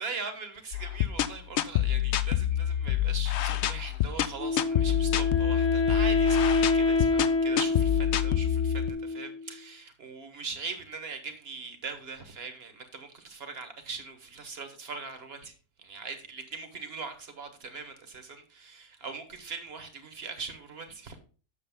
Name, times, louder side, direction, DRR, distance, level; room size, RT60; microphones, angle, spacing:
voice 1, 0.0-21.2, right 4 dB, 40° right, 1.4 m, -41 dB
sound 1, 0.7-8.9, left 12 dB, 65° left, 0.6 m, -27 dB
Wind instrument woodwind instrument, 4.4-9.4, left 3 dB, 10° left, 0.9 m, -27 dB
8.4 x 6.6 x 3.5 m
omnidirectional pair, 1.6 m